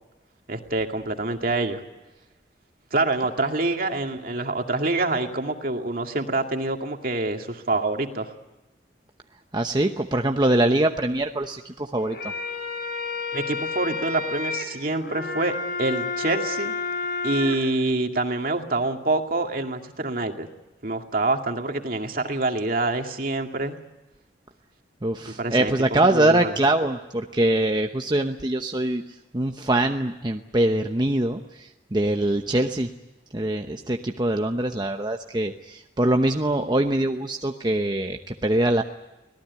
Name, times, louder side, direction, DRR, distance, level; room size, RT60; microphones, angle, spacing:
voice 1, 0.5-1.8 2.9-8.3 13.3-16.7 17.2-20.5 20.8-23.8 25.4-26.6, right 2 dB, 55° right, 4 dB, 2.3 m, -26 dB
voice 2, 9.5-12.3 25.0-29.0 29.3-32.9 33.3-38.8, right 1 dB, 25° right, 4 dB, 0.9 m, -23 dB
sound 1, 12.0-17.6, left 4 dB, 60° left, 4.0 m, -30 dB
25.0 x 18.5 x 9.7 m, 1.0 s
head